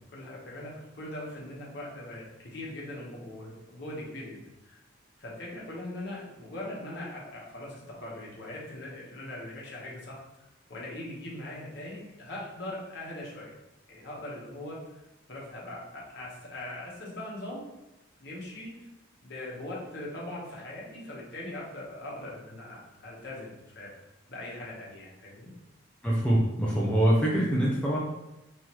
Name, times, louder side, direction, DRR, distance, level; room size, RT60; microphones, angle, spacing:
voice 1, 0.1-4.8 5.2-10.2 10.7-13.5 13.9-15.0 15.3-17.6 18.2-18.9 19.2-25.5, left 1 dB, 55° left, -5 dB, 1.1 m, -41 dB
voice 2, 26.0-28.0, right 1 dB, 5° left, -6 dB, 0.4 m, -24 dB
3.8 x 3.1 x 3.0 m, 0.93 s
head